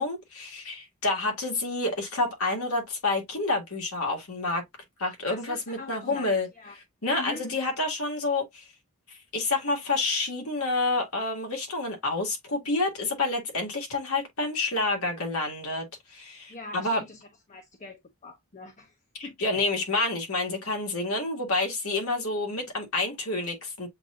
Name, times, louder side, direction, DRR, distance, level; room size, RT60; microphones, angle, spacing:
voice 1, 0.0-4.6 5.0-8.7 9.3-15.9 16.1-17.0 19.1-23.9, left 2 dB, 80° left, 1.9 m, -29 dB
voice 2, 5.3-6.3 6.6-6.7 7.2-7.4 16.5-18.9 19.2-19.4, left 3 dB, 35° left, 0.7 m, -43 dB
7.7 x 2.6 x 2.4 m
head